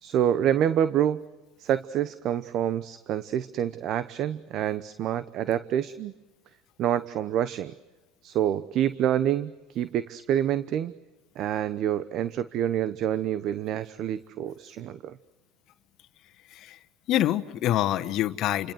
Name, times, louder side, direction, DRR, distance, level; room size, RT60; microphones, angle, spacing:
voice 1, 0.0-1.2 1.6-6.1 6.8-7.7 8.2-10.9 11.4-15.2, right 10 dB, 55° right, 14 dB, 1.0 m, -27 dB
voice 2, 17.1-18.7, left 13 dB, 55° left, 12 dB, 1.3 m, -26 dB
29.5 x 26.0 x 6.4 m, 1.1 s
supercardioid pair, 95°, 0 cm